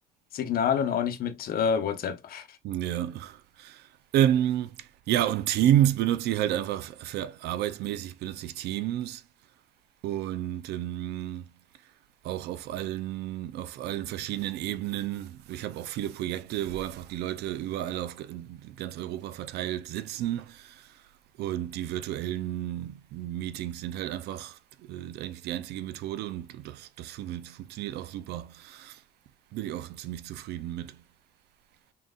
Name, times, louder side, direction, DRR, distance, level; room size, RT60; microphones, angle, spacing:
voice 1, 0.3-2.5, left 7 dB, 60° left, 0.9 m, -27 dB
voice 2, 2.6-9.2 10.0-11.5 12.2-21.0 21.4-29.0 29.5-31.0, right 12 dB, 75° right, 0.5 m, -31 dB
3.9 x 3.9 x 2.4 m
cardioid pair, 110°, 17 cm